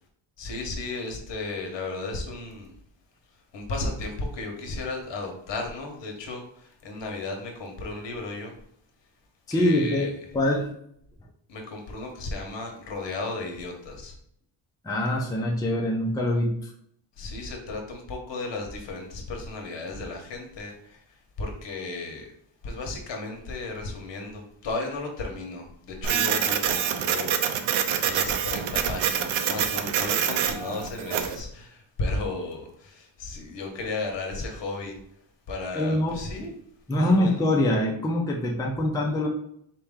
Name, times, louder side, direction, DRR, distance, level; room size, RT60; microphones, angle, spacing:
voice 1, 0.4-2.7 3.5-8.5 9.5-10.1 11.5-14.1 17.2-22.3 22.6-27.7 28.0-35.0 35.5-36.5 37.0-37.4, left 2 dB, 65° left, 2 dB, 1.2 m, -34 dB
voice 2, 9.5-10.7 14.8-16.7 35.7-36.2 36.9-39.3, left 1 dB, 10° left, -2 dB, 0.6 m, -24 dB
Printer, 26.0-31.4, right 8 dB, 80° right, 0.6 m, -26 dB
4.4 x 2.9 x 3.6 m, 0.69 s
wide cardioid pair, 140°, 47 cm